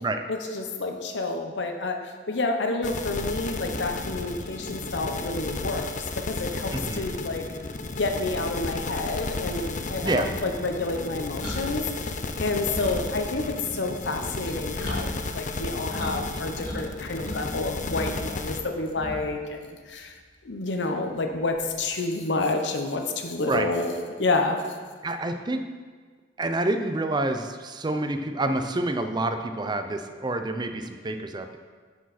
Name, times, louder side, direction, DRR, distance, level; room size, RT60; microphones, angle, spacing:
voice 1, 0.3-7.4 8.0-20.1 20.4-23.9 24.2-24.6, left 3 dB, 85° left, 4 dB, 0.8 m, -29 dB
sound 1, 2.8-18.6, left 3 dB, 45° left, 0.5 m, -33 dB
voice 2, 6.7-7.0 10.0-10.3 23.5-23.7 25.0-25.6 26.4-31.6, right 2 dB, 25° right, 7 dB, 0.5 m, -28 dB
sound 2, 11.3-16.2 16.4-17.4 17.8-19.5 19.8-20.0 21.4-21.9, equal, 25° left, 2.3 m, -38 dB
12.0 x 4.7 x 4.1 m, 1.5 s
head